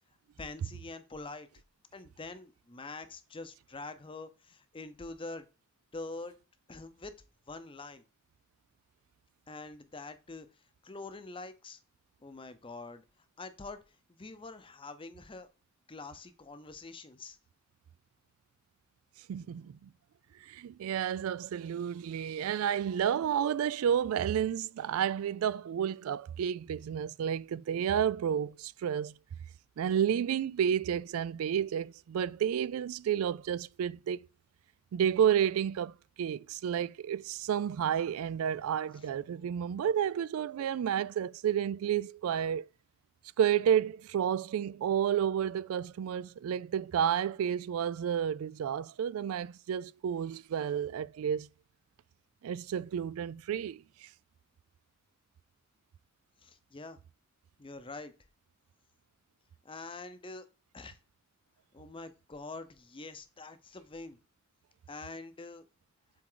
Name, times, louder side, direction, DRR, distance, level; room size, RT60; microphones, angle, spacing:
voice 1, 0.4-1.5 1.9-5.4 5.9-6.4 6.7-7.1 7.5-8.0 9.5-10.5 10.8-11.8 12.2-13.0 13.4-13.8 14.2-15.5 15.9-17.4 56.4-57.0 57.6-58.1 59.6-60.4 60.7-61.0 61.7-64.2 64.9-65.7, left 3 dB, 25° left, 0.7 m, -45 dB
voice 2, 19.3-19.9 20.4-29.2 29.8-34.3 34.9-42.7 43.4-51.5 52.4-54.1, right 9 dB, 80° right, 0.3 m, -31 dB
7.6 x 3.7 x 3.8 m
head